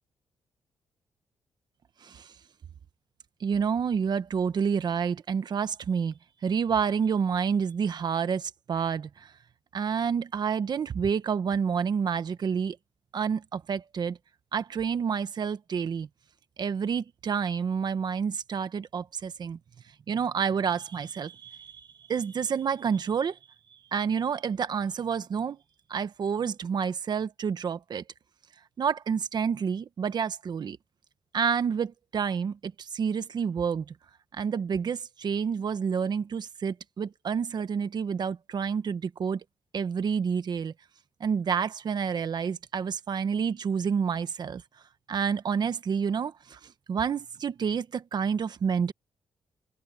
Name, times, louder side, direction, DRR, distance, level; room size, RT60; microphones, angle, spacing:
voice 1, 2.0-2.3 3.4-9.3 9.7-12.8 13.1-14.2 14.5-16.1 16.6-19.6 20.1-23.4 23.9-25.6 25.9-28.0 28.8-30.8 31.3-33.9 34.4-39.4 39.7-40.7 41.2-44.6 45.1-48.9, right 6 dB, 50° right, 1.2 m, -29 dB
wide cardioid pair, 135°, 9 cm